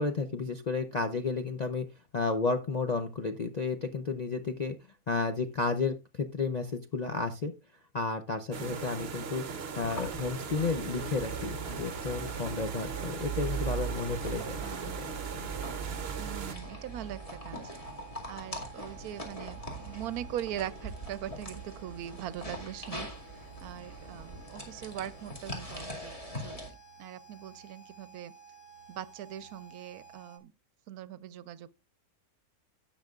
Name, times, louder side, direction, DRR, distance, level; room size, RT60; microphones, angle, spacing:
voice 1, 0.0-1.8 2.1-4.7 5.1-7.5 7.9-9.4 9.8-14.6 14.8-15.5, left 4 dB, 50° left, 0.5 m, -32 dB
sound 1, 8.5-16.5, right 6 dB, 50° right, 1.0 m, -39 dB
sound 2, 9.8-26.7, right 3 dB, 20° left, 2.3 m, -41 dB
sound 3, 10.9-30.4, right 6 dB, 75° left, 2.0 m, -53 dB
voice 2, 14.3-15.0 16.2-17.7 18.3-26.6 27.0-28.3 28.9-30.5 30.9-31.7, right 11 dB, 80° right, 1.1 m, -41 dB
17.0 x 5.8 x 2.4 m
omnidirectional pair, 1.6 m